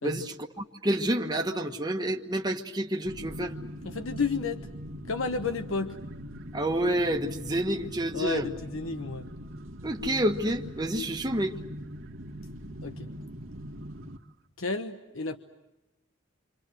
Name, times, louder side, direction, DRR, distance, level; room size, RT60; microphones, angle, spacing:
voice 1, 0.0-3.5 6.5-8.5 9.8-11.5, right 1 dB, 20° right, 2 dB, 1.3 m, -29 dB
sound 1, 3.0-14.2, equal, 85° right, 1.9 m, -41 dB
voice 2, 3.8-4.6 5.1-6.0 8.1-9.3 12.8-13.1 14.6-15.4, left 4 dB, 90° left, 7 dB, 1.2 m, -31 dB
28.0 x 26.5 x 7.8 m, 0.96 s
head